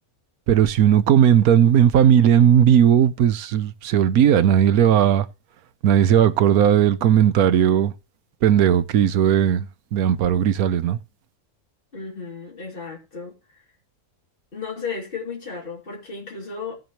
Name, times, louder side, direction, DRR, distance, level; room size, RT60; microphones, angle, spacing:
voice 1, 0.5-5.3 5.8-7.9 8.4-9.7 9.9-11.0, right 9 dB, 75° right, 1.2 m, -17 dB
voice 2, 11.9-13.4 14.5-16.8, left 5 dB, 35° left, 3.1 m, -34 dB
15.5 x 7.7 x 3.0 m
omnidirectional pair, 1.6 m